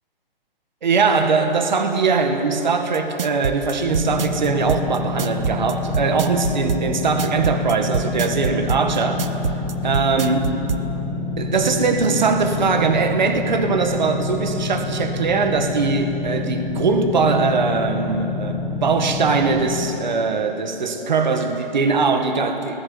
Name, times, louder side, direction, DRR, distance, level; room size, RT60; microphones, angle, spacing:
voice 1, 0.8-9.3 9.8-10.5 11.4-22.8, right 4 dB, 50° right, 6 dB, 1.9 m, -21 dB
sound 1, 2.9-10.8, right 6 dB, 70° right, 1.3 m, -25 dB
sound 2, 3.8-19.8, left 3 dB, 10° left, 6.1 m, -28 dB
24.5 x 19.0 x 7.1 m, 2.8 s
hypercardioid pair, 180°, 29 cm